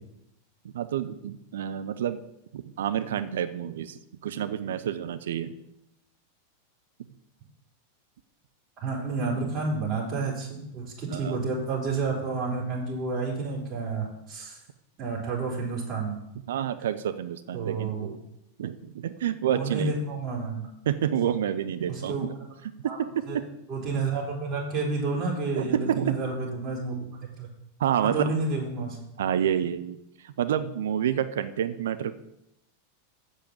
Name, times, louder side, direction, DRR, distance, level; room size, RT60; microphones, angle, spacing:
voice 1, 0.6-2.2 2.5-5.5 11.1-11.4 16.5-18.2 18.6-19.9 20.9-22.3 22.8-23.1 25.6-26.2 27.8-28.3 29.2-30.0 30.2-32.1, right 9 dB, 60° right, 11 dB, 0.6 m, -28 dB
voice 2, 8.8-14.6 15.0-16.1 17.5-18.1 19.5-20.6 21.9-22.3 22.8-23.0 23.3-23.4 23.7-27.5 28.0-29.0, right 3 dB, 35° right, -4 dB, 4.2 m, -30 dB
8.1 x 6.5 x 7.3 m, 0.85 s
figure-of-eight pair, 90°, 0 cm